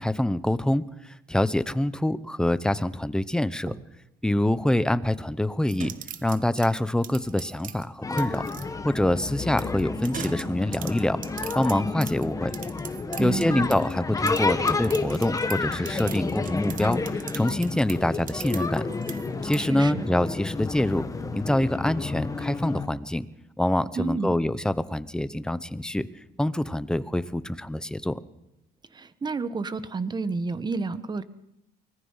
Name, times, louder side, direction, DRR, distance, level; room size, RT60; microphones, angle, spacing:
voice 1, 0.0-3.7 4.2-5.9 6.2-8.4 8.8-11.2 11.5-12.5 13.2-18.8 19.4-21.0 21.3-23.3 23.6-26.1 26.4-28.1, left 1 dB, 5° left, 14 dB, 0.9 m, -25 dB
sound 1, 5.6-8.7 9.5-14.0 14.2-19.6, right 9 dB, 55° right, 1.2 m, -41 dB
sound 2, 8.0-22.9, left 3 dB, 20° left, 1.5 m, -30 dB
voice 2, 13.2-13.7 19.6-20.1 24.0-24.3 28.9-31.2, right 4 dB, 25° right, 13 dB, 1.3 m, -30 dB
24.5 x 19.0 x 5.7 m, 0.87 s
cardioid pair, 110°, 17 cm